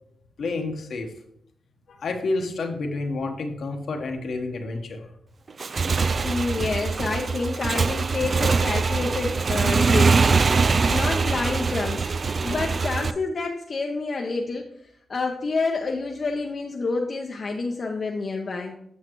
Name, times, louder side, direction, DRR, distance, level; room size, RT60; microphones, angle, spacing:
voice 1, 0.4-1.1 1.9-5.1, left 3 dB, 75° left, 3 dB, 1.1 m, -29 dB
Motorcycle / Engine, 5.5-13.1, right 4 dB, 55° right, 0.3 m, -23 dB
voice 2, 6.2-10.2 10.9-14.7 15.1-18.8, left 3 dB, 55° left, 1 dB, 0.7 m, -28 dB
8.4 x 6.3 x 3.1 m, 0.72 s
cardioid pair, 50°, 0 cm